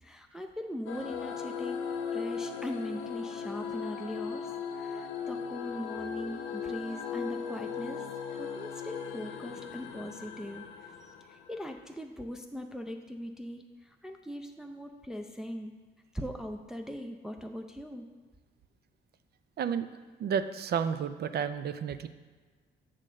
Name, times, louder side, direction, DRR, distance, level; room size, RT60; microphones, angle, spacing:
voice 1, 0.0-1.8 2.1-15.7 16.1-18.1, equal, 5° right, 4 dB, 0.5 m, -40 dB
sound 1, 0.9-11.8, left 6 dB, 90° left, 0.6 m, -38 dB
voice 2, 20.2-22.1, right 7 dB, 55° right, 11 dB, 0.5 m, -31 dB
6.6 x 3.8 x 6.3 m, 1.5 s
cardioid pair, 90°, 20 cm